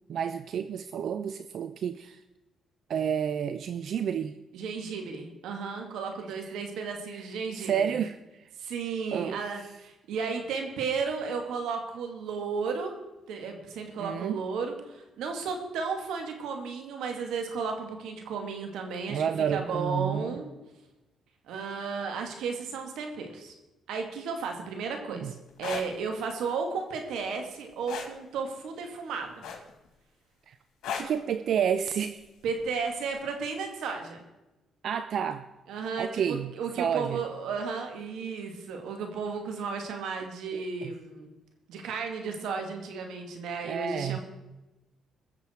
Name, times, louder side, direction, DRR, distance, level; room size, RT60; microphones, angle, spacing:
voice 1, 0.1-2.2 2.9-4.3 7.1-7.3 7.5-8.4 9.1-9.7 14.0-14.4 19.1-20.4 25.1-25.3 30.5-30.6 31.0-32.2 34.8-35.5 36.0-36.5 36.8-37.2 40.5-40.9 43.6-44.2, right 8 dB, 65° right, 11 dB, 0.5 m, -30 dB
voice 2, 4.5-8.0 8.6-13.0 13.3-19.2 19.5-20.5 21.5-23.5 23.9-29.5 32.4-34.2 35.7-41.3 41.7-44.2, right 5 dB, 85° right, 4 dB, 2.3 m, -34 dB
sound 1, 25.5-25.9 27.9-28.1 29.4-29.9 30.8-31.2 32.6-32.8, left 7 dB, 80° left, 2.3 m, -35 dB
21.5 x 7.2 x 4.6 m, 1.0 s
cardioid pair, 90°, 0 cm